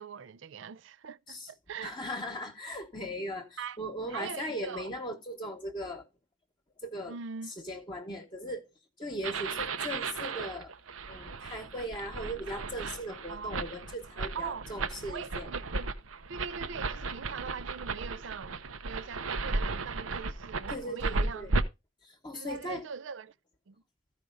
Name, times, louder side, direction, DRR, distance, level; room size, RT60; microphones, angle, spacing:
voice 1, 0.0-2.0 3.6-3.8 4.1-4.9 7.1-7.5 13.3-13.6 14.3-14.6 15.1-15.9 16.3-21.5 22.3-23.3 23.7-23.8, right 6 dB, 65° right, 0.4 m, -42 dB
voice 2, 1.8-6.0 6.8-7.1 7.5-8.7 9.0-10.7 11.1-15.5 20.7-21.5 22.0-22.8, equal, 25° left, 1.1 m, -38 dB
sound 1, 9.2-21.6, right 3 dB, 80° right, 0.8 m, -35 dB
14.0 x 5.0 x 3.9 m
head